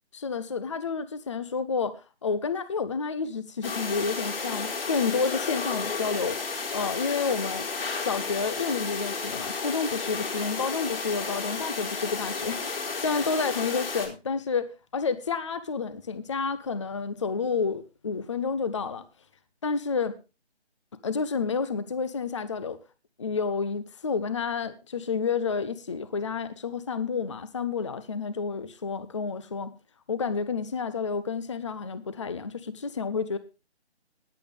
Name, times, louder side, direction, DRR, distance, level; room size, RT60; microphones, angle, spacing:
voice 1, 0.1-7.7 8.0-19.0 19.6-20.2 21.0-22.8 23.2-29.7 30.1-33.4, left 5 dB, 25° left, 0.7 m, -30 dB
sound 1, 3.6-14.1, left 4 dB, 55° left, 4.4 m, -32 dB
19.5 x 8.2 x 3.4 m
figure-of-eight pair, 160°, 34 cm